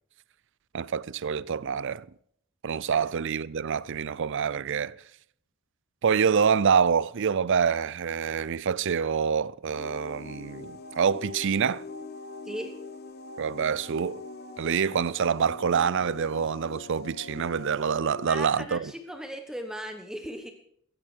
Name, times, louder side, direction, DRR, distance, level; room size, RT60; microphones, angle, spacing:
voice 1, 0.7-2.1 2.6-5.0 6.0-11.8 13.4-14.2 14.6-18.9, right 6 dB, 60° right, 0.5 m, -26 dB
sound 1, 9.7-18.3, left 2 dB, 50° left, 1.6 m, -43 dB
voice 2, 18.3-20.5, equal, 5° right, 1.3 m, -37 dB
15.5 x 15.0 x 4.6 m
head